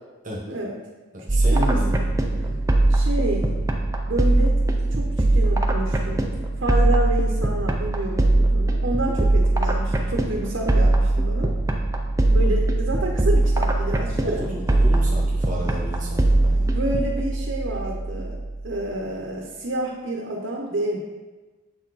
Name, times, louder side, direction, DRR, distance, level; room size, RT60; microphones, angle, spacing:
voice 1, 0.5-0.8 1.5-1.8 2.4-2.5 2.9-3.6 4.1-6.3 6.6-11.5 12.3-14.5 16.6-18.4 18.6-21.0, right 1 dB, 60° right, -1 dB, 0.9 m, -29 dB
voice 2, 1.1-2.6 14.2-16.7, equal, 40° right, -4 dB, 1.1 m, -33 dB
sound 1, 1.3-18.9, right 2 dB, 15° right, 0.4 m, -21 dB
7.3 x 4.5 x 4.1 m, 1.2 s
head